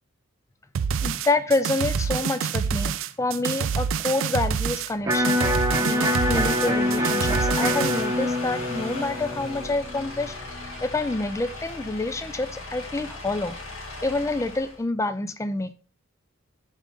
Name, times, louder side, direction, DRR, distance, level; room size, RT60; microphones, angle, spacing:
sound 1, 0.7-8.1, right 6 dB, 65° right, 0.4 m, -27 dB
voice 1, 1.0-5.4 5.8-10.3 10.8-13.6 14.0-15.7, left 2 dB, 15° left, 0.3 m, -27 dB
Electric guitar, 5.0-11.1, left 1 dB, 15° right, 0.8 m, -26 dB
sound 2, 5.5-14.8, left 2 dB, 70° left, 2.1 m, -37 dB
9.9 x 3.9 x 3.6 m
head